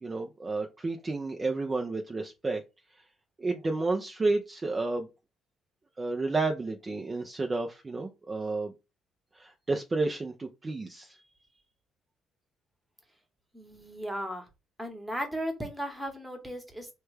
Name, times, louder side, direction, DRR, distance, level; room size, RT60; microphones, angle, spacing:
voice 1, 0.0-2.6 3.4-5.1 6.0-8.7 9.3-11.2, right 3 dB, 25° right, 0.5 m, -31 dB
voice 2, 13.5-14.5 14.8-16.9, equal, 5° right, 1.1 m, -36 dB
3.2 x 2.2 x 3.2 m
cardioid pair, 90°, 0 cm